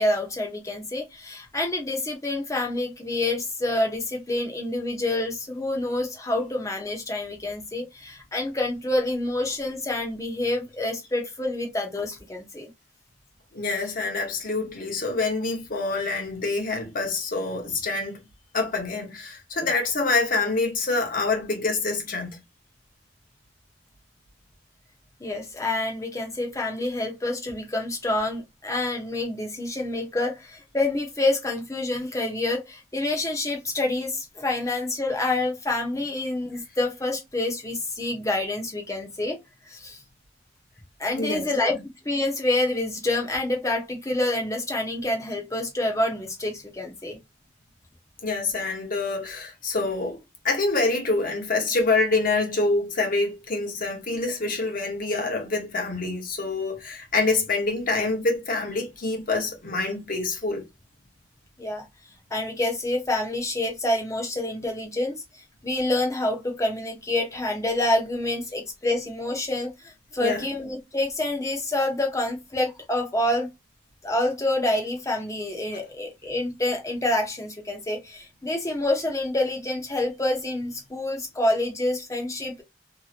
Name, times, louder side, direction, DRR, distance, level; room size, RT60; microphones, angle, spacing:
voice 1, 0.0-12.7 25.2-39.4 39.7-40.0 41.0-41.7 42.0-47.2 61.6-61.9 62.3-73.5 74.0-82.6, left 2 dB, 15° left, 0.8 m, -27 dB
voice 2, 13.5-18.2 18.5-22.4 41.1-41.5 48.2-50.2 50.4-60.6 70.2-70.5, left 3 dB, 45° left, 0.9 m, -26 dB
2.8 x 2.7 x 2.4 m
head